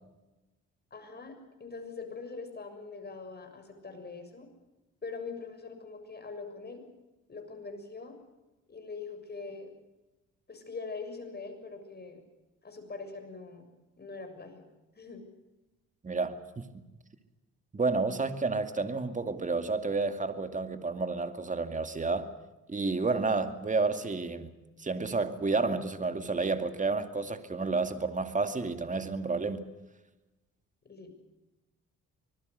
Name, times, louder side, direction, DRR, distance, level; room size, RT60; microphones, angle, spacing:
voice 1, 0.9-1.4 1.6-4.5 5.0-6.8 7.3-8.2 8.7-9.7 10.5-12.2 12.6-13.7 14.0-14.6 15.0-15.3 30.9-31.1, left 4 dB, 35° left, 6 dB, 6.9 m, -42 dB
voice 2, 16.0-16.6 17.7-22.3 22.7-24.5 24.8-29.6, right 3 dB, 25° right, 9 dB, 2.4 m, -30 dB
25.5 x 21.0 x 6.7 m, 1.1 s
cardioid pair, 90°, 30 cm